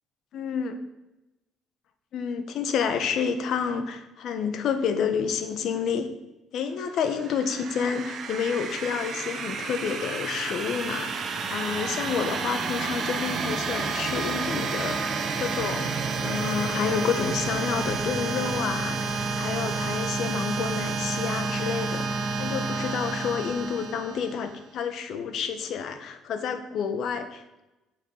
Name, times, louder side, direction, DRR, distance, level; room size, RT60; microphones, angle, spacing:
voice 1, 0.3-0.8 2.1-6.1 6.5-11.2 11.5-15.1 15.4-15.9 16.2-27.6, left 6 dB, 60° left, 9 dB, 1.3 m, -29 dB
sound 1, 7.0-24.6, right 4 dB, 45° right, 1.5 m, -30 dB
8.7 x 8.4 x 5.8 m, 0.99 s
cardioid pair, 110°, 0 cm